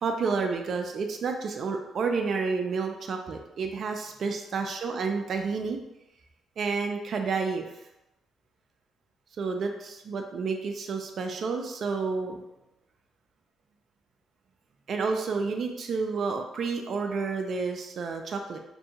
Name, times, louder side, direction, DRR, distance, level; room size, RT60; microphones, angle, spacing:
voice 1, 0.0-5.8 6.6-7.6 9.4-12.4 14.9-18.6, right 4 dB, 55° right, 4 dB, 0.3 m, -30 dB
2.6 x 2.3 x 2.8 m, 0.91 s
cardioid pair, 90°, 0 cm